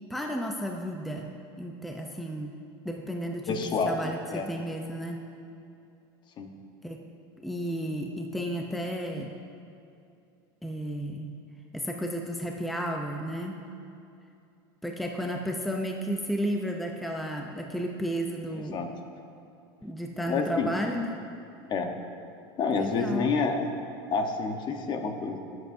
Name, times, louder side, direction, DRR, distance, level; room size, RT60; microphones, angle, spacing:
voice 1, 0.1-1.3 1.6-2.5 2.8-5.2 6.8-7.0 7.4-9.3 10.6-11.3 11.7-13.6 14.8-18.8 19.8-21.2 22.7-23.3, equal, ahead, 1 dB, 0.6 m, -33 dB
voice 2, 3.5-4.5 6.4-6.5 18.7-18.9 20.3-20.7 21.7-21.9 22.6-23.6 24.1-25.4, left 4 dB, 35° left, 5 dB, 1.1 m, -28 dB
23.0 x 8.0 x 2.7 m, 2.6 s
supercardioid pair, 120°, 13 cm